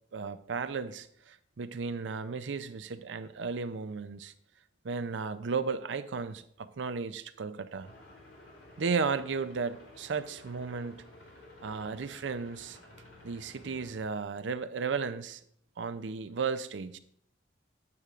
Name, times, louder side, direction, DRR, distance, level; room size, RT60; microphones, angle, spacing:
voice 1, 0.1-4.3 4.8-7.9 8.8-11.0 11.6-12.8 13.2-15.4 15.8-17.0, right 5 dB, 85° right, 12 dB, 0.5 m, -34 dB
sound 1, 7.8-14.0, left 1 dB, 75° left, 3.0 m, -53 dB
9.5 x 8.3 x 2.5 m, 0.67 s
head